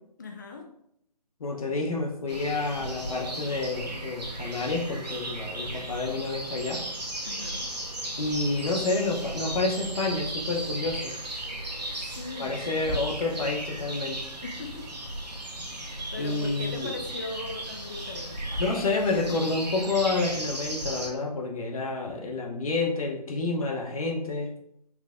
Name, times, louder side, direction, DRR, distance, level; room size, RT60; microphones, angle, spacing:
voice 1, 0.2-0.7 7.2-7.7 12.0-12.6 14.4-14.9 16.1-18.6, left 3 dB, 30° left, 3 dB, 0.4 m, -39 dB
voice 2, 1.4-6.8 8.2-11.1 12.4-14.2 16.2-16.9 18.6-24.5, left 3 dB, 60° left, 2 dB, 0.9 m, -29 dB
sound 1, 2.3-21.1, right 1 dB, 80° right, 1.0 m, -35 dB
4.7 x 2.0 x 3.6 m, 0.73 s
figure-of-eight pair, 145°, 21 cm